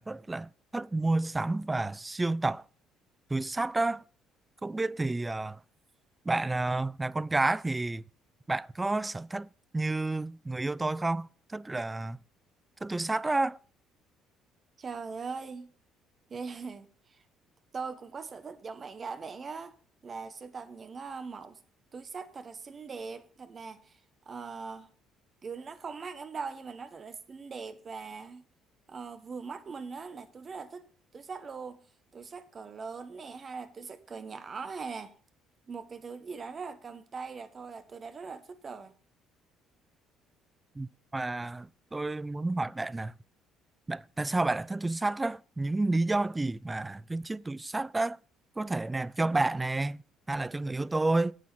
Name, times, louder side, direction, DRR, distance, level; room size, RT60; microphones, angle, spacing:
voice 1, 0.0-2.6 3.3-4.0 4.6-5.6 6.3-8.0 8.5-9.5 9.7-12.2 12.8-13.6 40.8-43.1 43.9-48.2 48.6-50.0 50.3-51.3, right 2 dB, 15° right, 0.4 m, -30 dB
voice 2, 14.8-15.7 16.3-17.2 17.7-19.7 20.0-21.6 21.9-24.0 24.2-24.9 25.4-28.5 28.9-31.8 32.1-35.1 35.7-38.9, right 5 dB, 35° right, 1.4 m, -41 dB
9.5 x 8.4 x 5.7 m
figure-of-eight pair, 50°, 0 cm